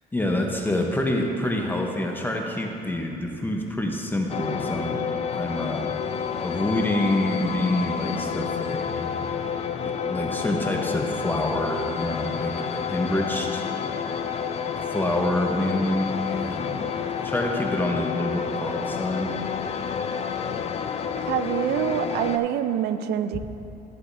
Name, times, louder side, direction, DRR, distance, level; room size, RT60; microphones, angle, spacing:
voice 1, 0.1-5.0 5.4-5.9 6.4-8.9 9.8-13.6 14.8-16.8 17.2-19.4, left 1 dB, 10° left, 1 dB, 0.8 m, -27 dB
sound 1, 4.3-22.4, left 6 dB, 40° left, 0.5 m, -29 dB
voice 2, 21.3-23.4, right 10 dB, 75° right, 11 dB, 0.5 m, -25 dB
14.5 x 8.1 x 2.6 m, 3.0 s
cardioid pair, 110°, 17 cm